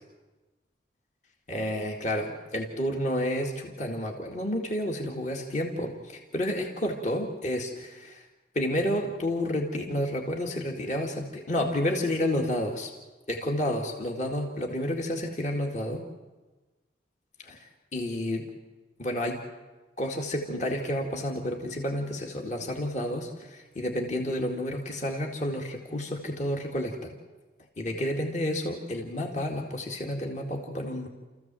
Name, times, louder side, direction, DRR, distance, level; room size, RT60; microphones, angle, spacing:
voice 1, 1.5-8.2 8.5-12.9 13.3-16.0 17.4-17.6 17.9-18.5 19.0-19.4 20.0-27.2 27.8-31.1, left 1 dB, 40° left, 1 dB, 2.2 m, -30 dB
29.5 x 15.0 x 7.7 m, 1.2 s
head